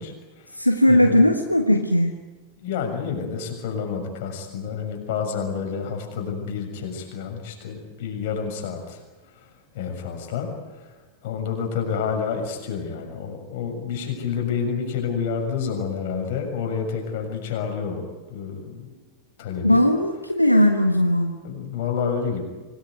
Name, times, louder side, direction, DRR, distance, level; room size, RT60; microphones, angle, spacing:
voice 1, 0.0-0.6 0.9-1.2 2.6-9.0 9.3-10.9 11.2-19.0 19.4-19.8 21.4-22.4, left 6 dB, 50° left, 3 dB, 6.7 m, -29 dB
voice 2, 0.5-2.1 19.6-21.3, left 1 dB, 90° left, 5 dB, 1.4 m, -18 dB
25.5 x 19.5 x 9.4 m, 1.3 s
figure-of-eight pair, 90°, 0 cm